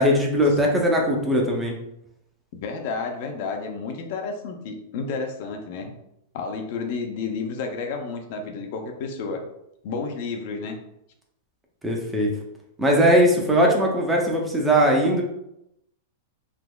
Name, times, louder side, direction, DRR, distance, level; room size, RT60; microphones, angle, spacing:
voice 1, 0.0-1.8 11.8-12.3 12.8-15.2, equal, 5° right, -1 dB, 0.5 m, -20 dB
voice 2, 2.5-6.0 6.3-9.4 9.8-10.8, left 4 dB, 50° left, 4 dB, 0.5 m, -31 dB
3.4 x 2.9 x 2.2 m, 0.81 s
supercardioid pair, 160°, 0 cm